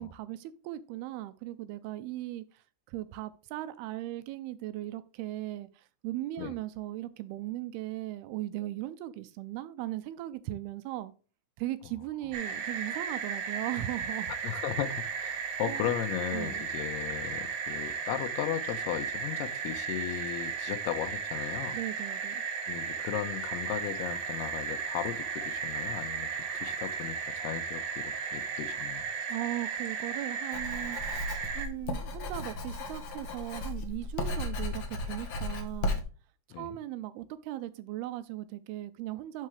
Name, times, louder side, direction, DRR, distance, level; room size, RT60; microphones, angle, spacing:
voice 1, 0.0-11.1 11.6-14.3 15.6-15.9 16.3-16.6 21.7-22.4 29.3-36.0 36.5-39.5, right 15 dB, 85° right, 2.5 m, -38 dB
sound 1, 12.3-31.7, right 6 dB, 70° right, 2.1 m, -35 dB
voice 2, 14.4-21.8 22.7-26.3 26.5-29.1 36.5-36.8, left 12 dB, 90° left, 2.8 m, -36 dB
Writing, 30.5-36.0, left 2 dB, 75° left, 1.3 m, -35 dB
11.0 x 4.7 x 3.3 m
omnidirectional pair, 4.5 m